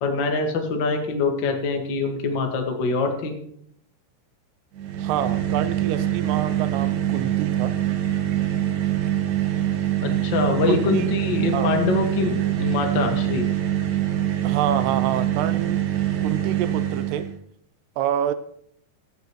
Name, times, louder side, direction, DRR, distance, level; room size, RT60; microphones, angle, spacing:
voice 1, 0.0-3.3 10.0-13.4, left 4 dB, 50° left, 3 dB, 1.3 m, -24 dB
sound 1, 4.8-17.4, right 12 dB, 65° right, 2.1 m, -24 dB
voice 2, 5.0-7.8 10.7-11.1 11.5-11.7 14.4-15.8 16.2-17.3 18.0-18.3, right 10 dB, 85° right, 12 dB, 2.7 m, -27 dB
22.0 x 9.1 x 3.1 m, 0.67 s
omnidirectional pair, 4.8 m